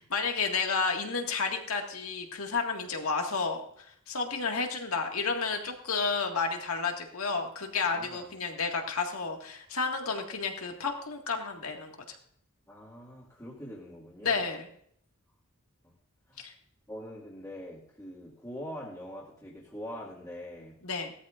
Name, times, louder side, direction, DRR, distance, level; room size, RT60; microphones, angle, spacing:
voice 1, 0.0-12.2 14.2-14.7 16.4-16.5 20.8-21.1, left 4 dB, 80° left, 2 dB, 1.9 m, -31 dB
voice 2, 7.9-8.3 12.7-14.5 15.8-15.9 16.3-16.5 16.9-20.8, equal, 15° left, -7 dB, 2.0 m, -43 dB
18.0 x 13.0 x 2.5 m, 0.65 s
head